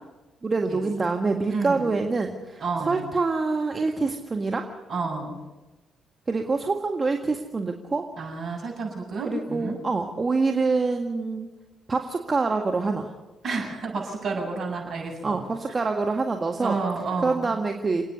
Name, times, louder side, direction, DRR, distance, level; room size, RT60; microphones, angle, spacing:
voice 1, 0.4-4.7 6.3-8.1 9.2-11.5 11.9-13.1 15.2-16.8 17.2-18.1, right 3 dB, 35° right, 4 dB, 1.8 m, -26 dB
voice 2, 1.5-1.9 2.6-3.0 4.9-5.4 8.2-9.8 13.4-15.4 16.6-17.5, right 4 dB, 55° right, 1 dB, 7.6 m, -30 dB
28.5 x 9.7 x 9.6 m, 1.1 s
hypercardioid pair, 50°, 0 cm